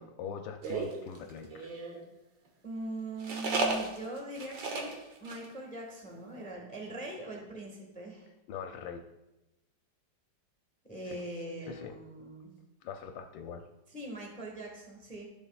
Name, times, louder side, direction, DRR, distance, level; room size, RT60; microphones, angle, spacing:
voice 1, 0.0-1.7 8.5-9.0 11.1-11.2 11.7-12.0 12.8-13.6, left 7 dB, 80° left, 4 dB, 1.3 m, -42 dB
sound 1, 0.6-2.0 3.2-5.0 5.3-5.5 5.7-5.8 6.1-6.4, right 3 dB, 75° right, 1.8 m, -34 dB
voice 2, 2.6-8.3 10.9-12.5 13.9-15.2, right 1 dB, 5° left, -1 dB, 1.3 m, -41 dB
12.5 x 7.0 x 2.4 m, 0.96 s
omnidirectional pair, 2.0 m